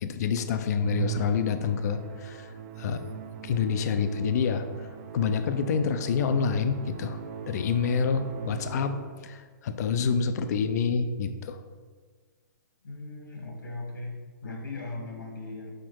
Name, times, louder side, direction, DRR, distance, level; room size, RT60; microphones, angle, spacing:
voice 1, 0.0-2.5 2.8-3.0 3.4-4.9 5.1-7.2 7.5-8.9 9.2-11.6, left 6 dB, 55° left, 9 dB, 0.4 m, -27 dB
Musical instrument, 0.8-9.4, right 9 dB, 50° right, 0.7 m, -39 dB
voice 2, 12.8-14.2 14.4-15.8, left 2 dB, 90° left, 1 dB, 1.5 m, -38 dB
4.8 x 4.3 x 4.6 m, 1.5 s
hypercardioid pair, 140°, 10 cm